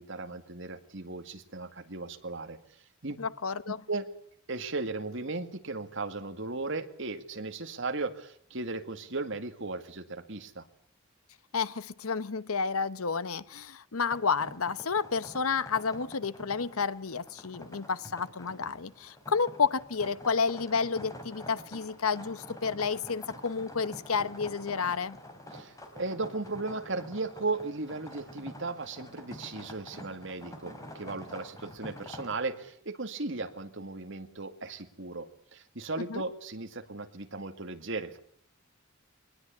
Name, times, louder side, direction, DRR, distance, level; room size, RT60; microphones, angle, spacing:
voice 1, 0.0-2.6 3.0-3.2 3.7-4.1 4.5-10.6 25.5-38.2, right 3 dB, 60° right, 2.1 m, -36 dB
voice 2, 3.2-3.8 11.5-25.2 36.0-36.2, left 5 dB, 90° left, 0.9 m, -31 dB
sound 1, 14.1-32.3, equal, 15° left, 3.8 m, -47 dB
23.0 x 19.5 x 8.4 m
head